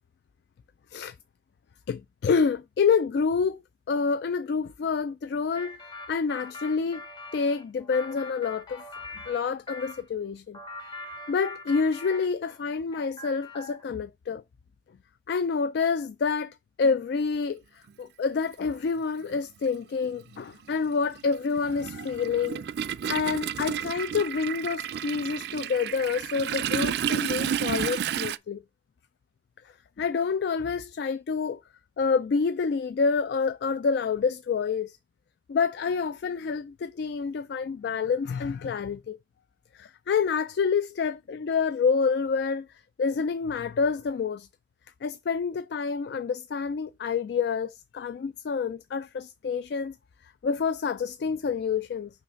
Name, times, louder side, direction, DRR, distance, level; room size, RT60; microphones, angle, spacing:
voice 1, 1.9-3.6 3.9-5.8 6.1-7.0 7.3-8.8 9.3-10.6 11.3-14.4 15.3-17.6 18.0-22.6 23.1-28.6 30.0-31.6 32.0-35.0 35.5-39.2 39.7-42.7 43.0-44.5 45.0-50.0 50.4-52.1, left 5 dB, 65° left, 0.3 m, -28 dB
sound 1, 5.5-10.0 10.5-12.6 12.9-13.9, left 2 dB, 25° left, 1.0 m, -42 dB
Toilet flush, 17.9-18.0 19.2-19.4 19.7-28.4, right 8 dB, 60° right, 0.3 m, -31 dB
5.7 x 3.1 x 5.6 m
head